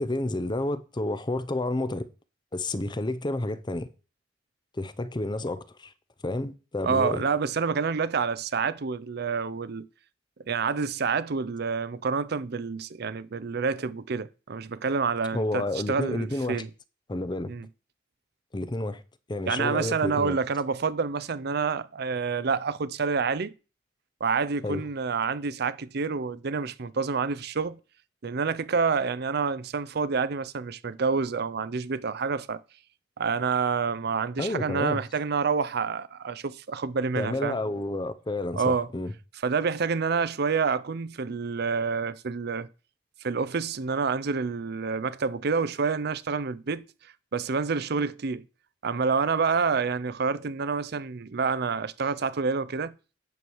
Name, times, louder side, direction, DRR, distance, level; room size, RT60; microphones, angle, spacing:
voice 1, 0.0-2.1 2.5-3.9 4.8-5.9 6.2-7.2 15.3-16.6 17.1-17.5 18.5-19.0 19.3-20.4 24.6-24.8 34.4-35.0 37.2-39.1, left 2 dB, 25° left, 0.7 m, -30 dB
voice 2, 6.8-9.9 10.5-16.7 17.5-17.7 19.5-23.5 24.2-27.8 28.2-32.6 33.2-37.6 38.5-38.9 39.4-42.7 43.2-46.8 47.3-48.4 48.8-52.9, right 5 dB, 60° right, 0.6 m, -28 dB
9.3 x 4.7 x 7.0 m
head